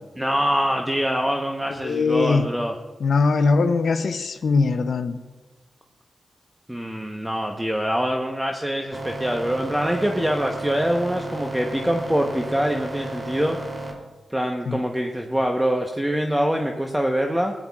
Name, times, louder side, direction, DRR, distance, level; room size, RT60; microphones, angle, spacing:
voice 1, 0.2-2.8 6.7-13.6 14.3-17.5, equal, 10° right, 2 dB, 0.9 m, -24 dB
voice 2, 1.8-2.5 3.0-5.2 14.7-14.8, left 4 dB, 75° left, 9 dB, 0.6 m, -21 dB
sound 1, 8.9-13.9, right 2 dB, 40° right, 3.0 m, -33 dB
17.0 x 10.0 x 2.4 m, 1.3 s
cardioid pair, 55°, 0 cm